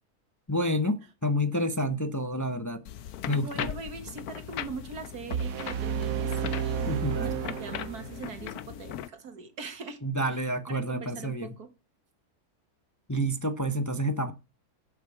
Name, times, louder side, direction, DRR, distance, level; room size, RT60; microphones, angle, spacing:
voice 1, 0.5-2.8 3.3-3.7 6.9-7.4 10.0-11.5 13.1-14.3, equal, 15° left, 0.7 m, -29 dB
sound 1, 2.9-9.1, left 11 dB, 85° left, 1.2 m, -39 dB
voice 2, 3.3-10.0 10.3-11.7, right 5 dB, 90° right, 2.3 m, -41 dB
sound 2, 5.3-8.4, right 8 dB, 70° right, 1.2 m, -31 dB
10.5 x 8.4 x 4.7 m
omnidirectional pair, 1.6 m